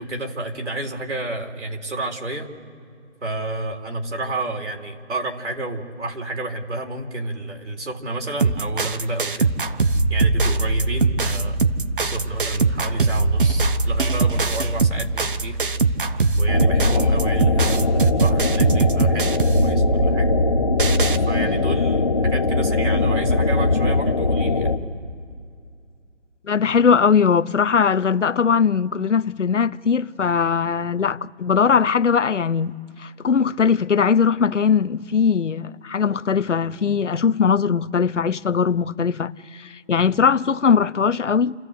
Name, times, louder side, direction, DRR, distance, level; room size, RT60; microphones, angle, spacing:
voice 1, 0.0-2.5 3.2-9.5 10.1-11.6 12.0-15.6 16.4-20.3 21.3-24.7, right 2 dB, 75° right, 3.9 m, -30 dB
sound 1, 8.4-21.2, right 3 dB, 50° right, 1.1 m, -21 dB
sound 2, 16.5-24.8, left 3 dB, 25° left, 0.9 m, -21 dB
voice 2, 26.4-41.5, left 6 dB, 85° left, 0.8 m, -20 dB
27.5 x 14.0 x 8.2 m
figure-of-eight pair, 170°, 35 cm